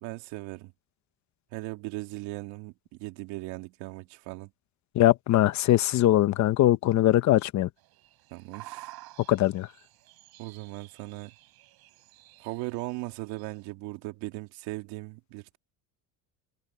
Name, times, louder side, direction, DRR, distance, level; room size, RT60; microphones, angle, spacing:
voice 1, 0.0-0.7 1.5-2.7 3.0-4.5 8.3-8.9 10.4-11.3 12.4-15.6, right 21 dB, 90° right, 2.7 m, -38 dB
voice 2, 4.9-7.7 9.3-9.7, left 14 dB, 45° left, 0.9 m, -21 dB
sound 1, 7.8-13.7, right 18 dB, 65° right, 7.0 m, -51 dB
cardioid pair, 155°, 39 cm